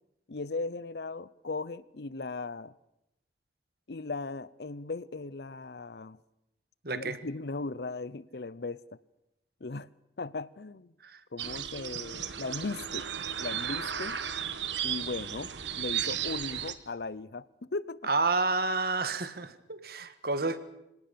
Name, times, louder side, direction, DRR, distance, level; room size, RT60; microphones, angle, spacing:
voice 1, 0.3-2.7 3.9-6.2 6.9-9.0 9.6-9.9 10.2-10.9 11.3-13.1 13.4-14.2 14.8-18.0, left 3 dB, 60° left, 0.7 m, -37 dB
voice 2, 6.8-7.2 11.0-11.2 18.0-20.6, right 3 dB, 55° right, 1.6 m, -30 dB
sound 1, 11.4-16.7, right 9 dB, 80° right, 1.5 m, -34 dB
25.5 x 18.0 x 6.9 m
head